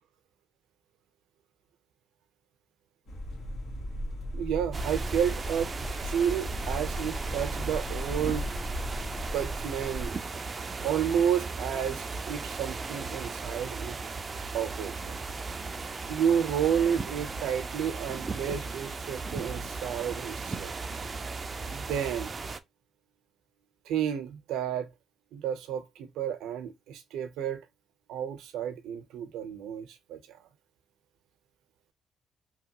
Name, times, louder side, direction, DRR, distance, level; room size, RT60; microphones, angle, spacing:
sound 1, 3.1-10.1, equal, 80° left, 1.3 m, -36 dB
voice 1, 4.3-5.7 6.0-8.5 9.3-10.1 10.8-14.0 14.5-15.3 16.1-20.7 21.7-22.3 23.9-24.9 25.3-27.6 28.1-30.4, right 8 dB, 90° right, 0.6 m, -31 dB
sound 2, 4.7-22.6, right 4 dB, 35° right, 0.4 m, -36 dB
2.9 x 2.3 x 2.8 m
cardioid pair, 90°, 0 cm